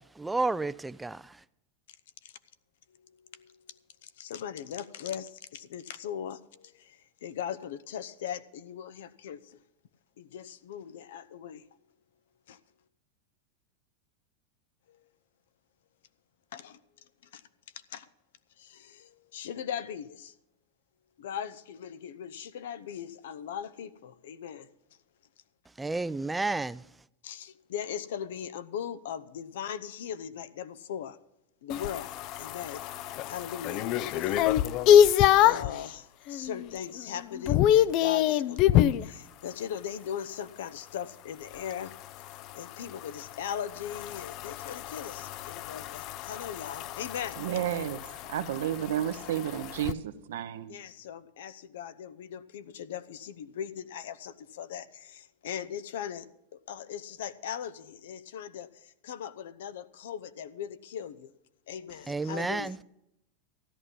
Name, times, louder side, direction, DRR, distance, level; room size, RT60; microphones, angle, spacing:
voice 1, 0.1-1.4 25.8-26.8 62.1-62.8, right 3 dB, 10° right, 0.4 m, -31 dB
voice 2, 3.3-9.6 10.2-11.7 12.5-12.6 14.9-15.0 16.5-16.8 17.3-17.4 17.9-18.1 18.6-20.3 21.2-24.7 27.2-31.2 31.6-32.1 32.4-32.9 33.3-33.8 34.1-34.6 35.0-41.9 42.5-47.4 50.7-56.3 56.5-61.3 61.7-62.7, left 9 dB, 75° left, 0.8 m, -39 dB
sound 1, 31.7-35.8 36.3-36.7 37.0-39.1 41.5-49.9, left 11 dB, 50° left, 0.5 m, -26 dB
voice 3, 47.4-48.0 48.3-50.8, right 10 dB, 80° right, 1.0 m, -31 dB
13.5 x 11.0 x 5.4 m
hypercardioid pair, 115°, 0 cm